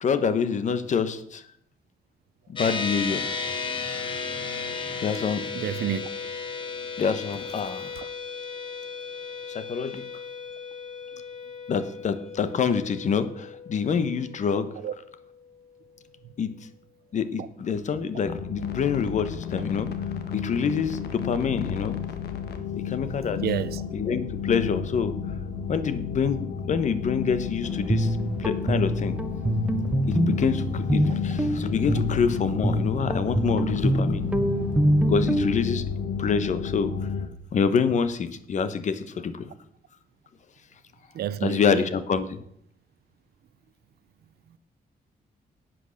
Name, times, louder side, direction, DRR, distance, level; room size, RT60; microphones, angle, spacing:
voice 1, 0.0-1.4 2.5-3.2 5.0-5.4 7.0-7.9 9.5-10.0 11.7-14.7 16.4-16.5 17.1-19.9 20.3-22.0 22.7-23.4 23.9-25.1 25.7-29.2 30.1-34.2 35.1-35.8 36.2-36.9 37.5-39.5 41.4-42.4, left 6 dB, 50° left, 1.0 m, -26 dB
sound 1, 2.6-16.2, left 5 dB, 30° left, 1.5 m, -35 dB
voice 2, 5.5-6.1 14.8-14.9 17.4-17.5 23.4-23.8 30.3-30.6 41.1-41.9, right 10 dB, 80° right, 0.7 m, -30 dB
sound 2, 18.2-37.3, left 7 dB, 85° left, 1.4 m, -32 dB
Guitar, 27.6-35.6, right 1 dB, 10° right, 0.6 m, -26 dB
11.0 x 8.7 x 6.4 m
wide cardioid pair, 165°, 16 cm